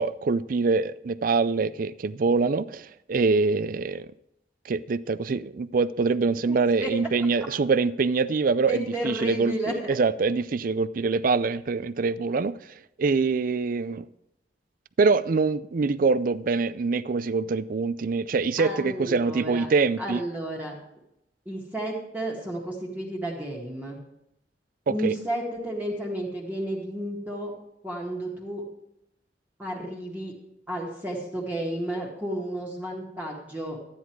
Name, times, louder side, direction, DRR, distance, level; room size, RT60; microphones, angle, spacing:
voice 1, 0.0-4.1 4.7-12.6 13.0-14.1 15.0-20.2 24.9-25.1, right 4 dB, 50° right, 0.4 m, -24 dB
voice 2, 6.5-6.9 8.7-10.0 18.6-19.7 20.0-20.8 21.5-24.0 24.9-27.5 27.8-28.6 29.6-30.3 30.7-33.8, right 1 dB, 10° right, 1.8 m, -32 dB
12.5 x 10.0 x 4.6 m
head